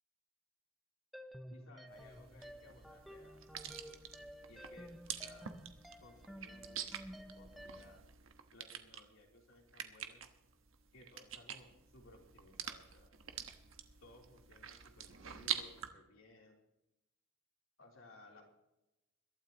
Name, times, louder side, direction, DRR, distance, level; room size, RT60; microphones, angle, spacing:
sound 1, 1.1-8.0, equal, ahead, 0.6 m, -53 dB
voice 1, 1.5-4.0 4.5-5.5 6.0-8.0 8.5-10.2 10.9-13.2 14.0-16.6 17.8-18.4, left 2 dB, 85° left, 0 dB, 3.5 m, -61 dB
sound 2, 1.9-15.9, right 9 dB, 80° right, 1.2 m, -47 dB
22.0 x 12.5 x 3.0 m, 0.91 s
head